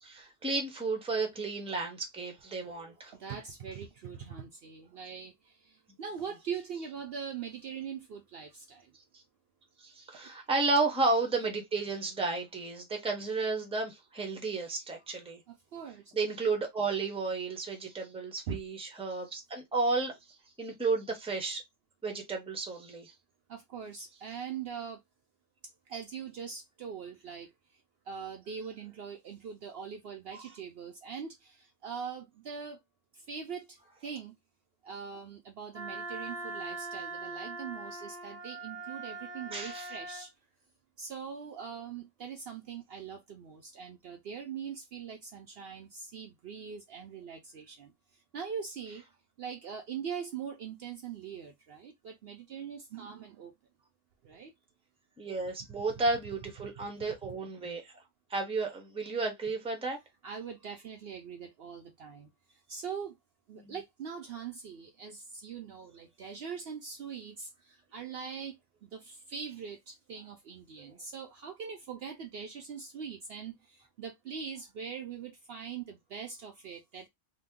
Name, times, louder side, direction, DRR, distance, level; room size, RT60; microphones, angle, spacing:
voice 1, 0.0-3.1 9.1-9.2 9.8-15.4 16.1-20.1 20.6-21.6 22.0-23.1 30.4-30.5 39.5-39.9 55.2-57.9 58.3-60.0 63.6-63.7, right 3 dB, 5° right, 0.7 m, -32 dB
voice 2, 3.2-8.9 15.5-16.1 18.5-18.6 23.5-25.0 25.9-27.5 28.1-32.8 33.1-34.3 34.8-40.3 41.0-47.9 48.3-49.0 49.4-53.5 54.2-54.5 56.6-56.9 57.2-57.4 60.2-62.3 62.7-63.1 63.5-68.5 68.8-77.1, right 6 dB, 65° right, 0.7 m, -42 dB
Wind instrument woodwind instrument, 35.7-40.3, right 3 dB, 20° left, 1.2 m, -41 dB
2.8 x 2.2 x 3.5 m
omnidirectional pair, 1.3 m